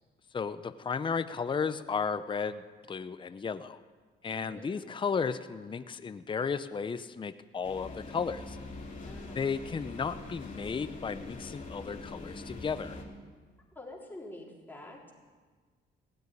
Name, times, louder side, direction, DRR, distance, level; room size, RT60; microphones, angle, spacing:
voice 1, 0.3-3.8 4.2-8.6 9.3-13.0, left 5 dB, 25° left, 12 dB, 0.6 m, -34 dB
voice 2, 4.3-4.7 9.0-9.4 13.8-15.1, left 1 dB, 10° left, -2 dB, 3.6 m, -47 dB
sound 1, 7.6-13.0, left 2 dB, 40° left, 2.8 m, -43 dB
17.0 x 8.0 x 9.7 m, 1.5 s
cardioid pair, 90°, 20 cm